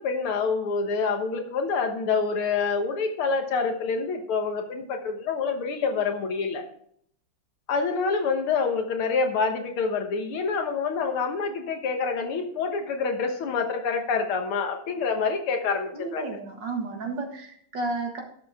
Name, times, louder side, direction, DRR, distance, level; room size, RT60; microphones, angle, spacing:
voice 1, 0.0-6.7 7.7-16.2, left 5 dB, 75° left, 4 dB, 2.2 m, -27 dB
voice 2, 15.9-18.2, right 3 dB, 55° right, 2 dB, 2.2 m, -32 dB
11.5 x 7.7 x 3.6 m, 0.64 s
omnidirectional pair, 2.4 m